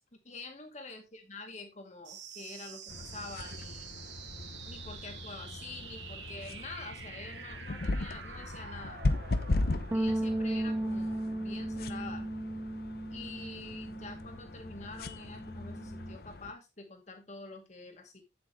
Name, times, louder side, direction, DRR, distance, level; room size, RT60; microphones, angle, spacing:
voice 1, 0.2-3.9 4.6-9.0 9.9-12.3 13.1-18.2, left 3 dB, 40° left, 4 dB, 2.2 m, -46 dB
sound 1, 2.0-13.1, right 6 dB, 80° right, 1.7 m, -48 dB
sound 2, 2.9-16.5, left 2 dB, 55° left, 0.8 m, -38 dB
sound 3, 9.9-14.5 14.7-16.2, right 1 dB, 10° right, 0.4 m, -35 dB
8.7 x 7.8 x 3.2 m, 0.22 s
head